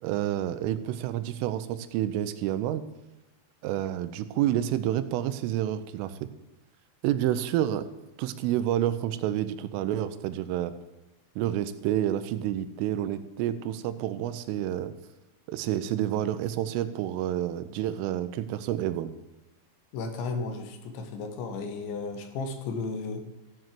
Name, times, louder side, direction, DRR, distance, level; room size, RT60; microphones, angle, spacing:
voice 1, 0.0-2.8 3.6-6.1 7.0-7.9 8.2-10.7 11.4-14.9 15.5-19.1, right 12 dB, 80° right, 12 dB, 3.2 m, -29 dB
voice 2, 19.9-23.2, left 4 dB, 70° left, 7 dB, 3.4 m, -34 dB
15.0 x 7.8 x 7.6 m, 1.0 s
omnidirectional pair, 5.9 m